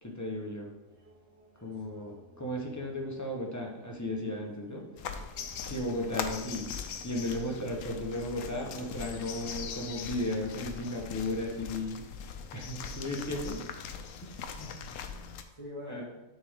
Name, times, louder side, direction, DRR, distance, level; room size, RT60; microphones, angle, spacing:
voice 1, 0.0-0.7 1.6-4.9 5.6-6.7 7.0-12.0 12.5-13.6 14.2-14.4 15.9-16.0, left 1 dB, 15° left, -1 dB, 0.7 m, -35 dB
sound 1, 0.9-11.2, right 1 dB, 45° right, 1.3 m, -58 dB
sound 2, 5.0-15.4, left 6 dB, 70° left, 0.8 m, -41 dB
voice 2, 14.4-16.0, left 1 dB, 15° right, -4 dB, 1.6 m, -46 dB
10.0 x 3.4 x 3.6 m, 1.0 s
omnidirectional pair, 1.8 m